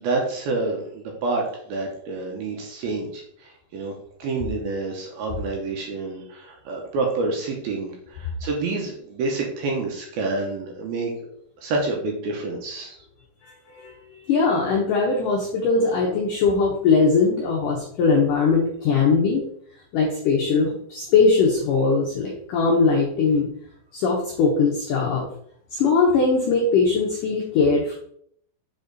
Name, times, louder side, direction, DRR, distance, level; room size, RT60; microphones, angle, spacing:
voice 1, 0.0-3.9 4.2-11.1 11.6-13.0, right 3 dB, 70° right, 0 dB, 2.5 m, -28 dB
voice 2, 13.4-13.9 14.3-19.5 19.9-23.5 23.9-25.2 25.7-27.9, left 4 dB, 80° left, -2 dB, 1.9 m, -20 dB
7.2 x 4.1 x 4.0 m, 0.66 s
omnidirectional pair, 5.1 m